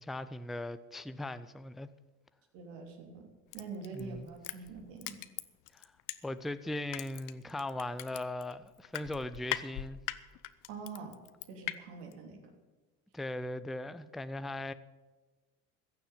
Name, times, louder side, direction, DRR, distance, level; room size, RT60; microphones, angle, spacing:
voice 1, 0.0-1.9 3.9-4.3 5.7-5.9 6.2-10.0 13.1-14.7, left 1 dB, ahead, 0.3 m, -39 dB
voice 2, 2.5-3.3 3.5-5.2 10.7-11.1 11.5-12.4, right 4 dB, 80° right, 3.1 m, -45 dB
Crushing, 3.5-6.5 6.9-11.8 12.1-12.2, left 16 dB, 70° left, 0.8 m, -40 dB
15.5 x 7.2 x 9.1 m
cardioid pair, 125°, 33 cm